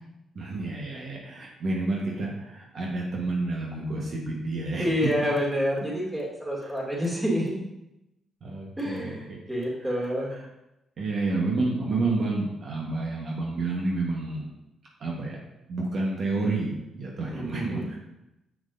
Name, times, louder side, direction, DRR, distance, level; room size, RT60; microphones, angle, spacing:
voice 1, 0.3-4.9 6.6-7.0 8.4-9.4 9.9-10.5 11.0-14.5 15.0-15.4 15.7-18.0, right 2 dB, 55° right, -2 dB, 1.2 m, -30 dB
voice 2, 4.8-7.5 8.8-10.3 17.3-18.0, equal, 15° right, -4 dB, 2.4 m, -28 dB
7.1 x 6.2 x 2.6 m, 0.91 s
cardioid pair, 90°, 0 cm